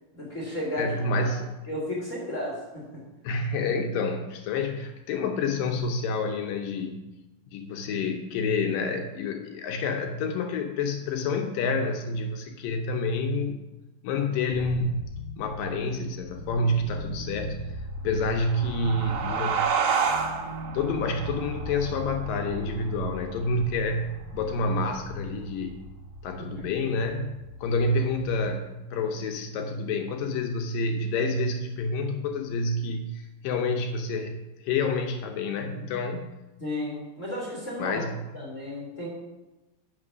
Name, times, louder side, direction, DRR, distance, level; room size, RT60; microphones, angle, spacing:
voice 1, 0.1-1.3 1.7-3.0 26.6-26.7 36.6-38.0 38.3-39.1, left 1 dB, 25° left, -5 dB, 2.3 m, -33 dB
voice 2, 0.7-1.5 3.2-7.0 7.5-13.6 14.0-15.1 15.4-17.7 18.0-19.7 20.7-25.8 26.2-27.3 27.6-36.3 37.8-38.1, left 3 dB, 75° left, 4 dB, 2.3 m, -28 dB
sound 1, 14.5-28.5, equal, 30° right, 2.6 m, -40 dB
sound 2, 18.3-23.5, right 6 dB, 85° right, 2.8 m, -30 dB
9.5 x 6.0 x 6.1 m, 1.0 s
omnidirectional pair, 4.2 m